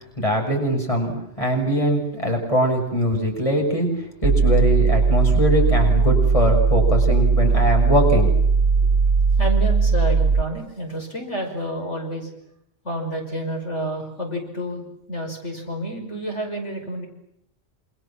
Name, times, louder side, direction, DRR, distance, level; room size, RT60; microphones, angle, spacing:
voice 1, 0.2-1.1 1.4-3.9 4.2-8.3, equal, 25° left, 2 dB, 7.2 m, -21 dB
sound 1, 4.2-10.4, right 4 dB, 55° right, 1.6 m, -18 dB
voice 2, 9.4-12.3 12.8-17.1, right 1 dB, 70° left, 2 dB, 6.1 m, -29 dB
28.5 x 28.0 x 7.4 m, 0.75 s
omnidirectional pair, 1.2 m